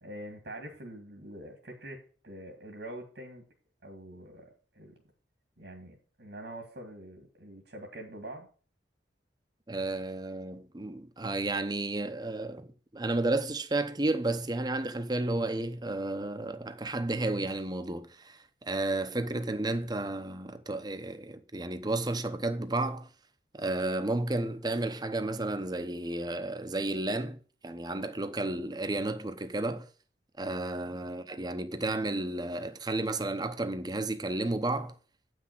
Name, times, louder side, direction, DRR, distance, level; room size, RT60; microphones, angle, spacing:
voice 1, 0.0-3.4 3.8-5.0 5.6-8.5, right 1 dB, 75° right, 2.1 m, -45 dB
voice 2, 9.7-23.1 23.5-29.9 30.4-34.9, right 2 dB, 25° right, 0.8 m, -32 dB
8.8 x 6.2 x 6.0 m
head